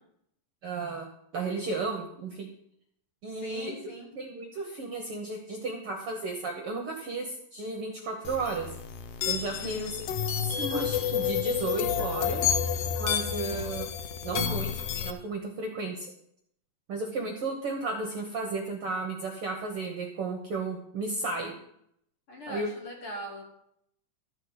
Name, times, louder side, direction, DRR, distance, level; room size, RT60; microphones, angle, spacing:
voice 1, 0.6-1.1 1.3-2.5 3.2-3.7 4.1-8.7 9.2-9.9 10.4-12.5 13.0-13.9 14.2-16.1 16.9-21.5 22.5-22.7, right 3 dB, 60° right, 3 dB, 1.6 m, -33 dB
voice 2, 3.3-4.1 9.6-9.9 22.3-23.4, equal, 45° left, 0 dB, 2.7 m, -41 dB
sound 1, 8.2-15.1, left 8 dB, 75° left, 1.4 m, -30 dB
13.0 x 5.5 x 8.1 m, 0.74 s
omnidirectional pair, 3.8 m